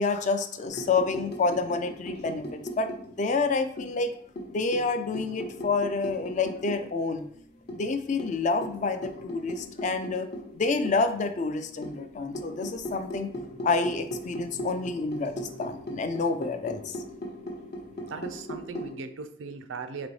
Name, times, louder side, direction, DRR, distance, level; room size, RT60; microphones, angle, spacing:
voice 1, 0.0-2.9 3.2-4.1 4.5-7.3 7.7-10.3 10.5-13.3 13.6-17.0, left 4 dB, 40° left, 9 dB, 0.3 m, -28 dB
sound 1, 0.7-3.4 3.8-6.9 7.2-7.3 7.7-11.2 11.8-18.9, equal, 55° left, 0.7 m, -38 dB
voice 2, 18.0-20.1, right 4 dB, 85° right, 10 dB, 0.4 m, -38 dB
3.9 x 3.1 x 3.1 m, 0.63 s
head